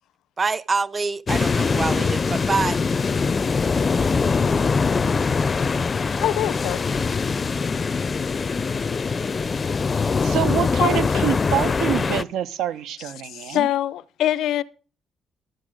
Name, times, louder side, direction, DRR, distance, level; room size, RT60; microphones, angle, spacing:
voice 1, 0.4-2.8, right 4 dB, 35° right, 0.5 m, -25 dB
sound 1, 1.3-12.2, left 5 dB, 35° left, 0.4 m, -22 dB
voice 2, 6.2-6.9 10.8-11.0 13.2-14.6, left 12 dB, 85° left, 0.5 m, -24 dB
voice 3, 10.0-13.7, right 11 dB, 85° right, 0.7 m, -26 dB
12.5 x 7.7 x 4.9 m
cardioid pair, 90°, 0 cm